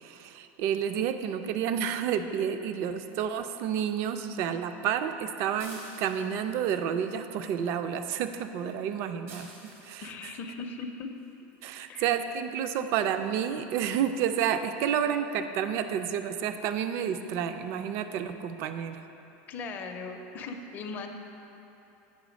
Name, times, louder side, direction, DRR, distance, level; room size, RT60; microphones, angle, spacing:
voice 1, 0.0-10.1 11.6-19.1, right 8 dB, 40° right, 9 dB, 0.4 m, -30 dB
sound 1, 5.6-6.6 9.3-10.0 11.5-11.6 12.2-12.4 12.7-12.8 13.1-13.2, right 3 dB, 85° right, 1.5 m, -48 dB
voice 2, 10.0-11.1 11.9-12.1 19.5-21.1, left 4 dB, 30° left, 4 dB, 0.5 m, -38 dB
8.3 x 5.5 x 5.1 m, 2.9 s
supercardioid pair, 170°, 7 cm